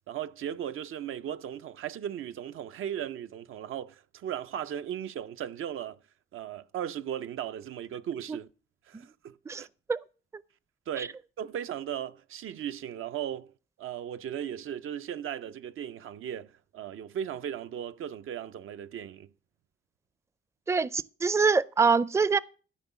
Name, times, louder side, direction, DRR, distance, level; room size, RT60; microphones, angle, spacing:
voice 1, 0.1-6.0 6.3-8.5 8.9-9.7 10.9-13.5 13.8-19.3, right 10 dB, 80° right, 0.6 m, -37 dB
voice 2, 20.7-22.4, right 5 dB, 15° right, 0.4 m, -24 dB
13.5 x 5.4 x 7.0 m
cardioid pair, 85°, 21 cm